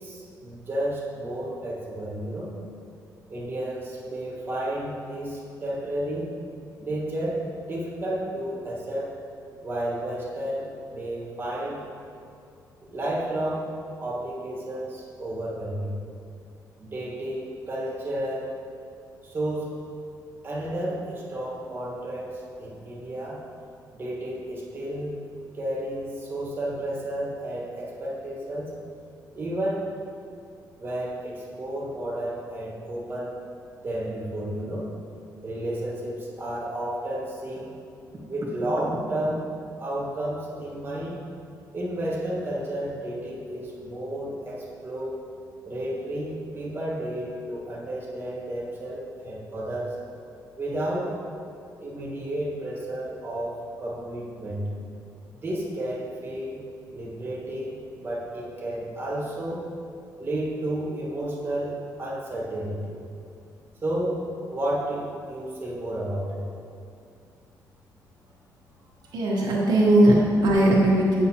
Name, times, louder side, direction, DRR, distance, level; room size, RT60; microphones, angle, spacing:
voice 1, 0.0-2.5 3.3-6.3 6.8-9.2 9.6-11.8 12.8-13.7 14.0-15.9 16.8-18.5 19.2-19.8 20.4-23.4 23.9-25.2 25.5-28.7 29.4-29.9 30.8-33.4 33.8-34.9 35.4-37.8 38.3-39.5 39.8-41.2 41.7-45.2 45.6-50.0 50.6-51.1 51.8-54.7 55.4-56.6 56.9-59.7 60.2-63.0 63.8-66.4, right 1 dB, 30° right, -5 dB, 1.4 m, -32 dB
voice 2, 69.1-71.3, right 1 dB, 75° right, -4 dB, 1.1 m, -19 dB
8.6 x 5.6 x 2.9 m, 2.4 s
cardioid pair, 120°, 7 cm